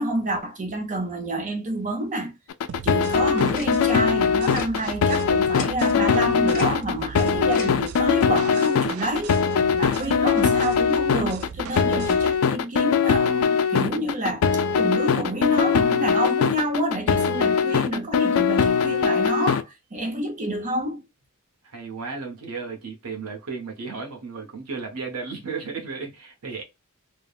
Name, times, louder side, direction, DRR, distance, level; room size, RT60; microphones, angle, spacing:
voice 1, 0.0-2.3 2.8-9.4 9.7-14.4 14.8-21.1, right 1 dB, 35° right, 0.7 m, -28 dB
sound 1, 2.5-19.6, left 6 dB, 70° left, 0.4 m, -21 dB
sound 2, 2.7-12.4, right 7 dB, 70° right, 0.3 m, -39 dB
Tick-tock, 3.5-3.7 4.5-4.7 5.5-5.7 6.5-6.7 7.5-7.7, left 4 dB, 40° left, 0.8 m, -34 dB
voice 2, 9.8-10.1 21.6-26.6, right 4 dB, 90° right, 0.8 m, -35 dB
3.2 x 2.1 x 2.3 m
head